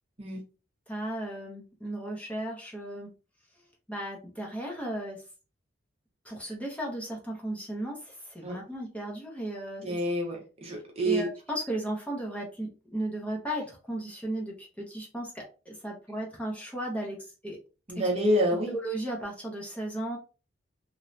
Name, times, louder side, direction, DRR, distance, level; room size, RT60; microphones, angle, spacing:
voice 1, 0.9-3.1 3.9-5.2 6.2-10.0 11.0-17.6 18.0-18.1 18.7-20.2, right 1 dB, 5° left, -2 dB, 0.6 m, -35 dB
voice 2, 9.8-11.3 17.9-18.8, equal, 30° right, 1 dB, 0.7 m, -27 dB
3.0 x 2.2 x 2.6 m, 0.34 s
head